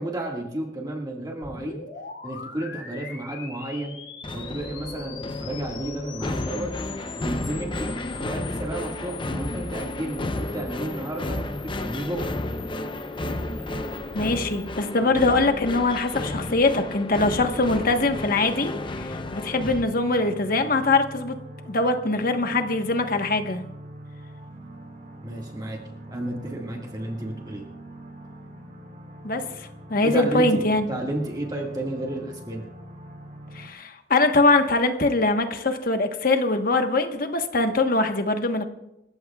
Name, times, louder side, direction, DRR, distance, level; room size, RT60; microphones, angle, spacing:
voice 1, 0.0-1.8 2.2-4.0 4.3-6.7 7.2-12.4 15.0-15.1 25.2-25.8 26.1-27.6 30.0-32.7, right 1 dB, 25° right, -1 dB, 1.9 m, -32 dB
sound 1, 1.4-14.7, left 6 dB, 80° left, 3.1 m, -43 dB
sound 2, 4.2-19.8, left 2 dB, 30° left, 0.7 m, -32 dB
voice 2, 14.1-21.4 21.7-23.6 29.2-30.9 33.5-38.7, left 2 dB, 55° left, 6 dB, 1.3 m, -23 dB
sound 3, 17.2-33.7, right 1 dB, 50° right, 3.1 m, -43 dB
28.5 x 14.0 x 2.4 m, 0.91 s
head